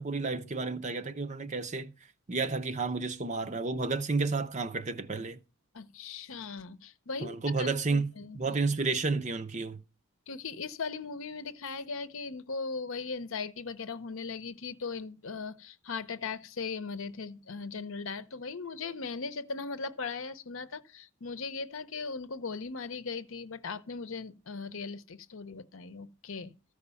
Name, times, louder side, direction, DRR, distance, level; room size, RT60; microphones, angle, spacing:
voice 1, 0.0-1.9 2.3-5.4 7.2-9.8, right 3 dB, 35° right, 0.6 m, -31 dB
voice 2, 5.7-8.6 10.3-26.5, left 4 dB, 65° left, 0.8 m, -38 dB
14.0 x 4.9 x 6.9 m
head